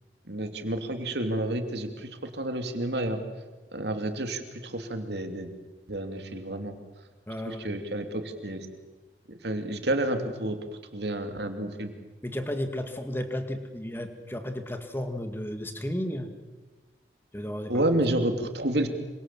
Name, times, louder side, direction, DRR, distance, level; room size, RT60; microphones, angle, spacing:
voice 1, 0.3-3.2 3.7-5.5 5.9-6.7 7.5-8.7 9.3-10.6 10.9-11.9 17.7-18.9, right 1 dB, 70° right, 6 dB, 2.9 m, -30 dB
voice 2, 7.3-7.8 12.2-16.3 17.3-17.8, equal, 10° left, 7 dB, 2.1 m, -33 dB
27.0 x 25.5 x 7.6 m, 1.2 s
head